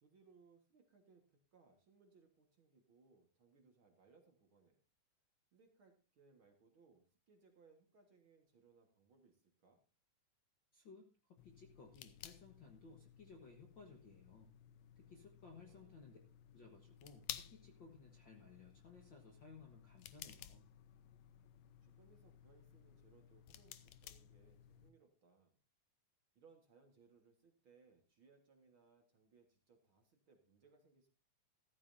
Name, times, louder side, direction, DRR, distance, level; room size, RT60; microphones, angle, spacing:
voice 1, 0.0-4.8 5.5-9.8 15.1-15.2 15.6-16.0 21.8-25.6 26.4-31.1, right 4 dB, 50° right, 3 dB, 2.0 m, -69 dB
voice 2, 10.7-14.5 14.9-16.2 16.5-20.6, left 4 dB, 55° left, 2 dB, 1.4 m, -59 dB
sound 1, 11.4-24.9, left 11 dB, 75° left, 1.7 m, -56 dB
14.0 x 13.5 x 2.6 m, 0.34 s
omnidirectional pair, 3.7 m